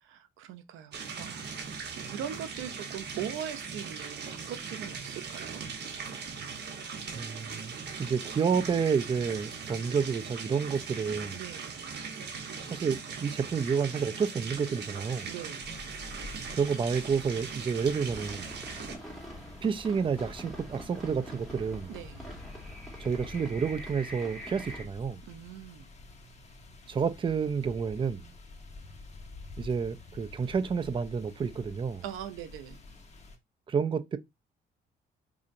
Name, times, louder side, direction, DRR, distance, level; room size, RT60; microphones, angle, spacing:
voice 1, 0.0-5.6 11.3-11.8 15.2-15.7 21.9-22.3 25.2-25.9 32.0-32.8, right 10 dB, 90° right, 0.6 m, -41 dB
sound 1, 0.9-19.0, right 5 dB, 60° right, 1.0 m, -40 dB
voice 2, 7.2-11.4 12.7-15.3 16.5-18.6 19.6-21.9 23.0-25.2 26.9-28.3 29.6-32.0 33.7-34.2, right 6 dB, 25° right, 0.4 m, -30 dB
sound 2, 15.6-33.4, left 3 dB, 35° left, 1.0 m, -49 dB
sound 3, 18.0-24.8, equal, ahead, 1.8 m, -45 dB
4.9 x 2.7 x 2.5 m
cardioid pair, 90°, 20 cm